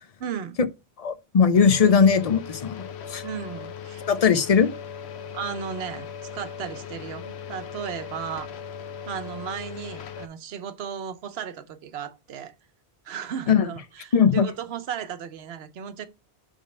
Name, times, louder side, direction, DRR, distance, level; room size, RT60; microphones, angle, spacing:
voice 1, 0.2-0.6 3.2-4.0 5.3-8.5 9.1-12.5 13.0-16.1, right 8 dB, 75° right, 1.0 m, -35 dB
voice 2, 1.0-3.2 4.1-4.7 13.5-13.7 14.1-14.5, left 6 dB, 45° left, 0.6 m, -19 dB
sound 1, 1.5-10.3, left 7 dB, 80° left, 0.9 m, -38 dB
5.2 x 3.5 x 5.3 m
omnidirectional pair, 1.1 m